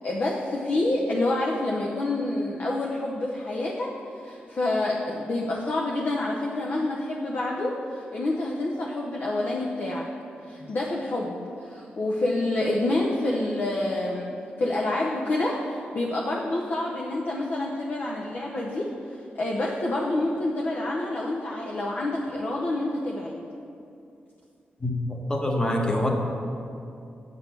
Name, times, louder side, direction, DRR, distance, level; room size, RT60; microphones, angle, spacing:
voice 1, 0.0-3.9 4.2-10.1 10.5-23.4, left 2 dB, 55° left, -3 dB, 0.8 m, -28 dB
voice 2, 24.8-26.1, left 1 dB, 20° left, 0 dB, 1.1 m, -25 dB
8.2 x 4.1 x 6.7 m, 2.6 s
cardioid pair, 85°, 4 cm